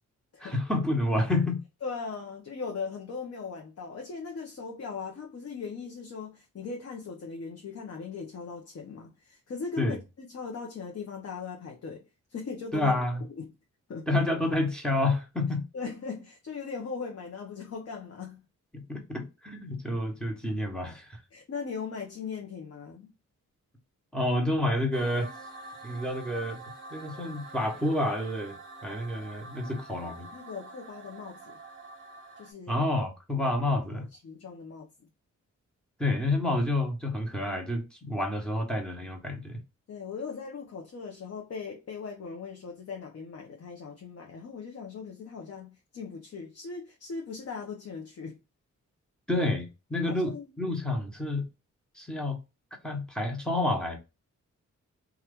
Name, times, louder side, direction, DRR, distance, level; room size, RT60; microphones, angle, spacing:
voice 1, 0.4-1.6 9.8-10.0 12.7-13.2 14.1-15.6 18.7-21.2 24.1-25.3 25.8-26.6 26.9-30.3 32.7-34.1 36.0-39.6 49.3-51.5 51.9-52.4 52.8-54.0, left 1 dB, 5° left, 1.1 m, -29 dB
voice 2, 1.8-12.0 12.3-12.9 13.3-13.5 13.9-14.2 15.7-18.4 21.3-23.1 29.6-29.7 30.2-31.5 32.4-32.8 33.4-33.5 33.9-34.9 39.9-48.4 50.0-50.4, left 5 dB, 50° left, 0.7 m, -39 dB
sound 1, 24.9-32.5, right 2 dB, 40° right, 0.8 m, -46 dB
2.9 x 2.4 x 3.4 m
cardioid pair, 85°, 30 cm